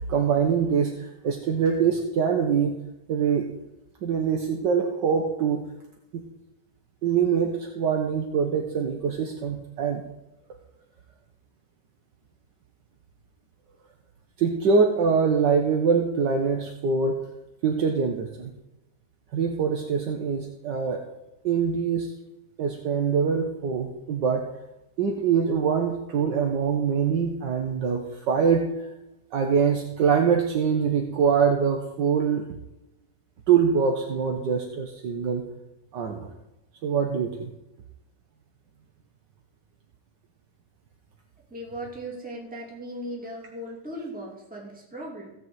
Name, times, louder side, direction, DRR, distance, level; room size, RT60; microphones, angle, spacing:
voice 1, 0.0-2.8 3.1-3.5 4.0-5.6 6.1-6.2 7.0-10.0 14.4-17.2 17.6-18.5 19.3-21.0 21.4-22.1 22.6-24.5 25.0-28.7 29.3-32.4 33.5-35.4 35.9-36.3 36.8-37.5, right 6 dB, 75° right, 2 dB, 1.8 m, -24 dB
voice 2, 41.5-45.3, right 1 dB, 5° right, -2 dB, 2.6 m, -37 dB
16.0 x 5.5 x 7.9 m, 0.92 s
omnidirectional pair, 1.9 m